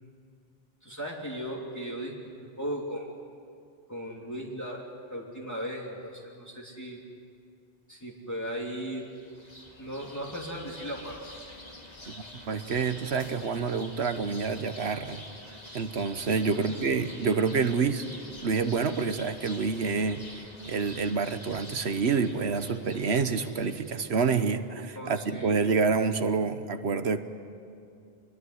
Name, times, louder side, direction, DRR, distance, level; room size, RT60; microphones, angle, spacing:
voice 1, 0.8-3.1 3.9-4.8 5.1-7.0 7.9-9.0 9.8-11.2 16.5-16.9 25.0-25.6, equal, 15° left, -4 dB, 3.0 m, -37 dB
sound 1, 9.0-24.1, left 1 dB, 40° left, 2.7 m, -47 dB
voice 2, 12.5-15.2 15.7-18.1 18.4-20.3 20.7-27.2, right 5 dB, 80° right, 10 dB, 1.3 m, -27 dB
26.0 x 21.5 x 9.6 m, 2.5 s
omnidirectional pair, 1.1 m